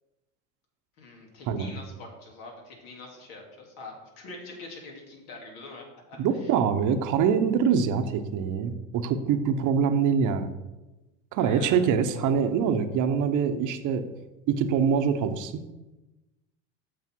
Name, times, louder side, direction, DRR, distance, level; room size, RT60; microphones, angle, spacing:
voice 1, 1.0-6.5 11.4-11.9, left 2 dB, 70° left, 0 dB, 2.8 m, -44 dB
voice 2, 6.2-10.5 11.3-14.1 14.5-15.6, right 7 dB, 55° right, 8 dB, 1.0 m, -24 dB
8.4 x 6.7 x 4.6 m, 1.0 s
supercardioid pair, 90°, 37 cm